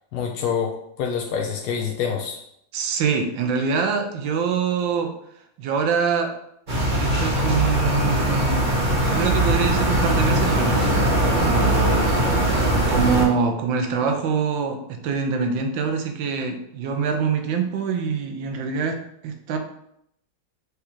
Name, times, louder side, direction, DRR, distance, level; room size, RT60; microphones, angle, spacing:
voice 1, 0.1-2.4, left 7 dB, 75° left, 0 dB, 0.9 m, -26 dB
voice 2, 2.7-5.1 5.6-6.3 7.0-8.7 9.0-10.8 11.3-12.1 12.9-19.0 19.2-19.6, right 6 dB, 85° right, 5 dB, 1.4 m, -24 dB
sound 1, 6.7-13.2, right 1 dB, 35° right, 0.9 m, -20 dB
6.5 x 2.4 x 3.0 m, 0.74 s
omnidirectional pair, 2.0 m